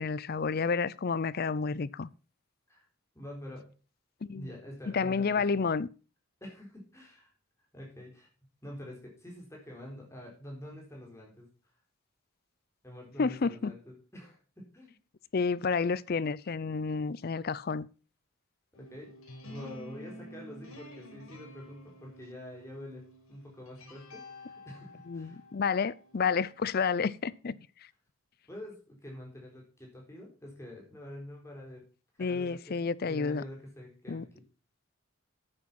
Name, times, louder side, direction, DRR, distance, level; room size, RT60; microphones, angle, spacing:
voice 1, 0.0-2.1 4.2-4.5 4.9-5.9 13.2-13.7 15.3-17.9 25.1-27.6 32.2-33.4 34.1-34.2, left 5 dB, 45° left, 0.5 m, -30 dB
voice 2, 3.1-3.7 4.3-5.4 6.4-7.3 7.7-8.3 8.6-11.5 12.8-14.9 18.7-19.1 19.4-25.4 28.5-31.8 32.2-34.4, left 1 dB, 15° left, 4.0 m, -46 dB
sound 1, 18.7-26.8, left 1 dB, 85° left, 4.4 m, -50 dB
9.7 x 8.7 x 5.7 m
head